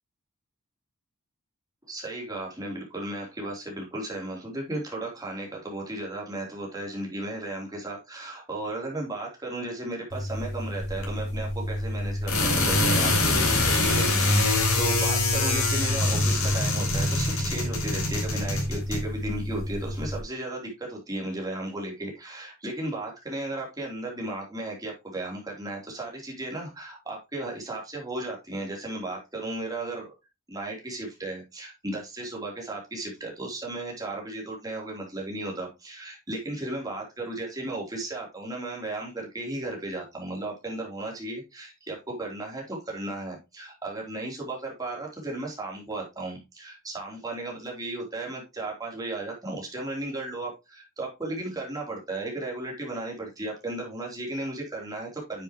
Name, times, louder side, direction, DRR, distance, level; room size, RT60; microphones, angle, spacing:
voice 1, 1.9-30.1 30.5-55.4, right 2 dB, 15° right, -2 dB, 3.6 m, -35 dB
sound 1, 10.1-20.2, left 2 dB, 70° left, 4.2 m, -25 dB
9.9 x 7.2 x 3.1 m, 0.24 s
head